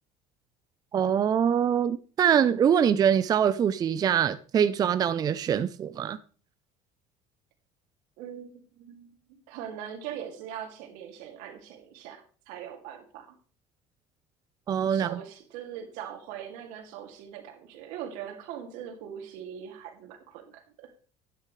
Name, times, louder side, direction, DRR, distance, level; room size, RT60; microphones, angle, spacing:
voice 1, 0.9-6.2 14.7-15.2, right 8 dB, 30° right, 0.5 m, -24 dB
voice 2, 8.2-13.4 14.9-20.9, right 9 dB, 80° right, 2.5 m, -41 dB
12.0 x 10.0 x 3.2 m
cardioid pair, 135°, 13 cm